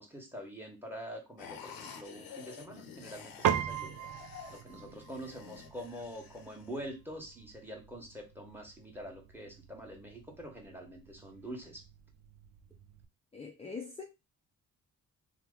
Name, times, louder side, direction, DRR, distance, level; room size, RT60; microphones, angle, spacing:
voice 1, 0.0-11.8, equal, 5° right, 1.2 m, -45 dB
sound 1, 1.4-6.8, left 7 dB, 80° left, 0.7 m, -50 dB
Piano, 3.4-13.0, right 9 dB, 65° right, 0.5 m, -40 dB
voice 2, 13.3-14.0, left 5 dB, 15° left, 0.5 m, -42 dB
2.9 x 2.1 x 3.7 m
cardioid pair, 70°, 35 cm